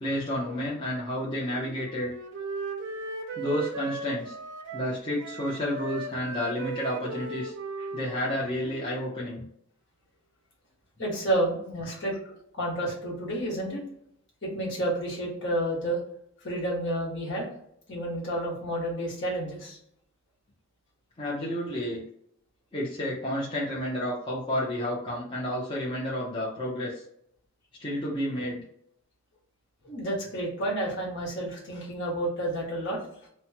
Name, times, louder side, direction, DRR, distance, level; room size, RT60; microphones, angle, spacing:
voice 1, 0.0-2.1 3.4-4.4 4.7-9.4 11.8-11.9 21.2-22.0 22.7-27.0 27.8-28.6, equal, 25° left, -6 dB, 0.6 m, -31 dB
Wind instrument woodwind instrument, 1.4-9.1, right 3 dB, 60° right, 0.5 m, -37 dB
voice 2, 11.0-12.2 12.6-13.8 14.4-16.0 16.4-17.5 17.9-19.8 29.8-33.0, right 1 dB, 60° left, -4 dB, 1.4 m, -30 dB
3.0 x 2.2 x 2.8 m, 0.72 s
head